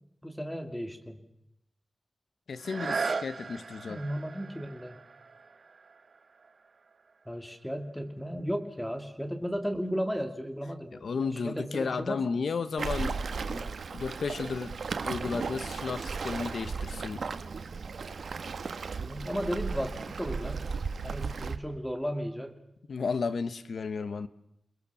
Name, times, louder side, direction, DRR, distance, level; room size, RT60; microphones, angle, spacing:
voice 1, 0.2-1.2 3.9-5.0 7.2-12.2 19.0-20.6 21.0-22.6, equal, 5° left, 2.9 m, -35 dB
voice 2, 2.5-4.0 11.0-13.2 13.5-14.8 15.0-17.3 22.9-24.3, left 5 dB, 80° left, 1.2 m, -33 dB
sound 1, 2.6-8.2 8.8-8.9, right 4 dB, 60° right, 1.2 m, -38 dB
Waves surf, 12.8-21.6, right 5 dB, 85° right, 1.4 m, -35 dB
29.0 x 21.0 x 7.1 m
wide cardioid pair, 105°, 0 cm